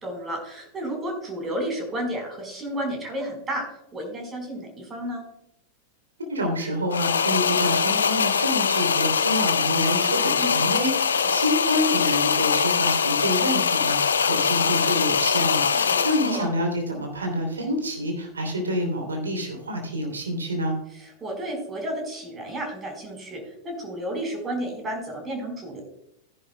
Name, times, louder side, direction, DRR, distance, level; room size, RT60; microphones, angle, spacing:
voice 1, 0.0-3.6 3.9-5.2 10.1-10.6 11.1-11.4 15.7-16.5 20.9-25.8, right 1 dB, 20° right, 2 dB, 4.4 m, -32 dB
voice 2, 6.3-20.8, equal, 75° right, 2 dB, 2.9 m, -27 dB
sound 1, 6.9-16.5, left 6 dB, 70° left, 0.5 m, -22 dB
15.0 x 10.5 x 2.2 m, 0.79 s
figure-of-eight pair, 90°, 0 cm